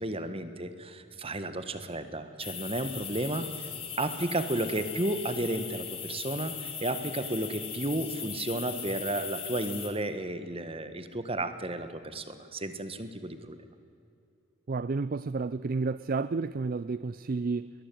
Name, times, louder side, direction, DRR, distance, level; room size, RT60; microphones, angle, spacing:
voice 1, 0.0-3.7 4.0-13.6, right 1 dB, 30° right, 10 dB, 1.5 m, -33 dB
sound 1, 2.4-9.9, left 8 dB, 30° left, 2.8 m, -39 dB
voice 2, 14.7-17.7, right 4 dB, 45° right, 16 dB, 0.4 m, -31 dB
22.0 x 19.0 x 9.2 m, 2.7 s
head